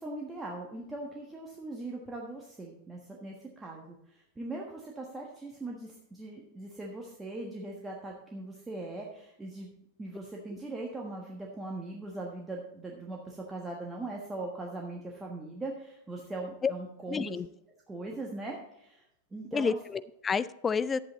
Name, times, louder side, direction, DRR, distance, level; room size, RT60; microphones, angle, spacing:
voice 1, 0.0-9.7 10.0-17.4 17.9-19.0 19.3-19.8, right 2 dB, 10° right, -1 dB, 1.4 m, -40 dB
voice 2, 17.1-17.5 19.5-21.0, left 5 dB, 20° left, 16 dB, 0.4 m, -29 dB
10.5 x 8.5 x 4.0 m, 0.82 s
figure-of-eight pair, 90°, 0 cm